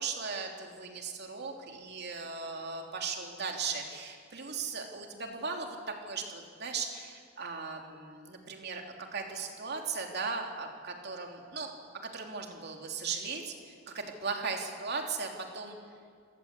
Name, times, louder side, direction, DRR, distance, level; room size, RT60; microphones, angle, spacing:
voice 1, 0.0-11.7 12.0-15.3 15.5-15.7, right 5 dB, 55° right, 2 dB, 3.2 m, -37 dB
27.5 x 18.0 x 8.4 m, 2.1 s
head